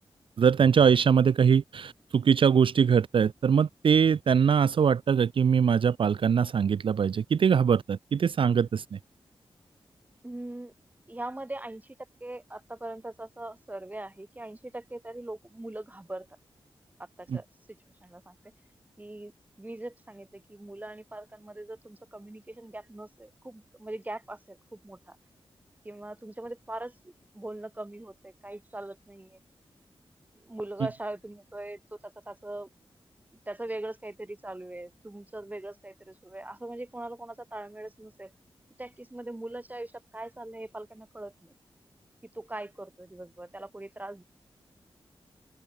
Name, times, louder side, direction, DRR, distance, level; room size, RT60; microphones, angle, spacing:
voice 1, 0.4-9.0, right 7 dB, 60° right, 0.4 m, -22 dB
voice 2, 10.2-10.7 11.1-16.3 17.0-17.5 18.0-18.4 19.0-19.3 19.6-25.2 25.8-29.4 30.4-32.7 33.5-38.3 38.8-41.5 42.2-44.2, right 1 dB, 15° right, 3.3 m, -41 dB
wide cardioid pair, 95°, 10 cm